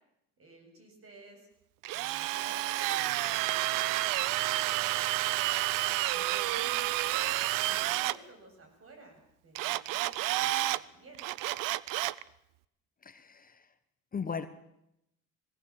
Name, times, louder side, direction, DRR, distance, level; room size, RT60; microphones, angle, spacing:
voice 1, 0.4-1.5 1.9-5.5 6.1-11.2, right 2 dB, 45° right, 4 dB, 7.9 m, -53 dB
Drill, 1.8-8.2 9.6-10.8 11.2-12.2, right 17 dB, 80° right, 0.7 m, -30 dB
voice 2, 13.0-13.7 14.1-14.5, left 6 dB, 25° left, 10 dB, 1.2 m, -37 dB
20.5 x 17.5 x 7.7 m, 0.81 s
cardioid pair, 105°, 32 cm